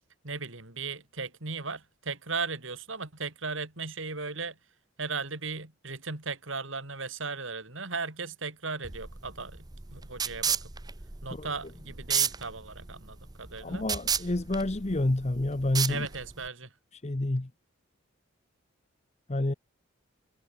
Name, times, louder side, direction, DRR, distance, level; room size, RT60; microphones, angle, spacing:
voice 1, 0.2-4.6 5.0-10.6 11.2-13.8 15.9-16.7, right 4 dB, 65° right, 3.4 m, -37 dB
sound 1, 8.8-16.5, right 7 dB, 20° right, 0.7 m, -33 dB
voice 2, 13.6-16.1 17.0-17.5 19.3-19.5, left 2 dB, 30° left, 0.8 m, -28 dB
head